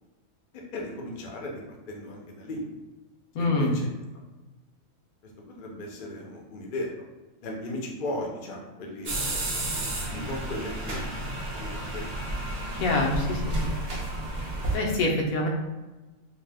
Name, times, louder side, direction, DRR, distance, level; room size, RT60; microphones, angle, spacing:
voice 1, 0.7-1.6 1.9-2.6 3.4-3.9 5.2-7.0 7.4-12.1, left 1 dB, 55° left, -1 dB, 0.5 m, -37 dB
voice 2, 3.3-3.8 12.8-13.7 14.7-15.5, left 2 dB, 80° left, 0 dB, 1.0 m, -25 dB
sound 1, 9.1-14.8, right 1 dB, 70° right, 0.4 m, -31 dB
2.8 x 2.1 x 3.3 m, 1.1 s
omnidirectional pair, 1.5 m